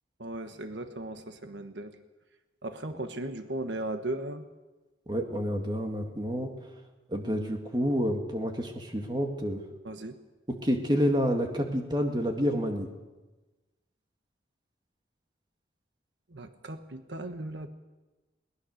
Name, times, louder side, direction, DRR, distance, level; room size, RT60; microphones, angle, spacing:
voice 1, 0.2-2.0 2.6-4.4 9.8-10.2 16.3-17.7, right 1 dB, 75° right, 7 dB, 1.3 m, -37 dB
voice 2, 5.1-6.5 7.1-9.6 10.5-12.9, equal, 25° right, 3 dB, 2.1 m, -29 dB
22.0 x 19.5 x 6.5 m, 1.2 s
head